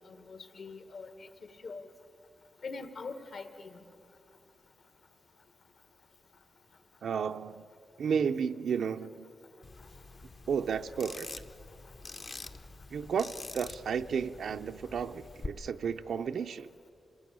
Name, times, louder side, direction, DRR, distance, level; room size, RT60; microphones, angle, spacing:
voice 1, 0.3-1.3 1.6-1.9 2.6-3.8, left 4 dB, 55° left, 8 dB, 1.8 m, -43 dB
voice 2, 7.0-7.6 8.0-9.3 10.5-11.3 12.9-16.7, right 6 dB, 75° right, 7 dB, 0.6 m, -32 dB
sound 1, 9.6-15.5, left 3 dB, 35° left, 0.9 m, -46 dB
26.5 x 20.0 x 8.8 m, 2.5 s
wide cardioid pair, 165°, 0 cm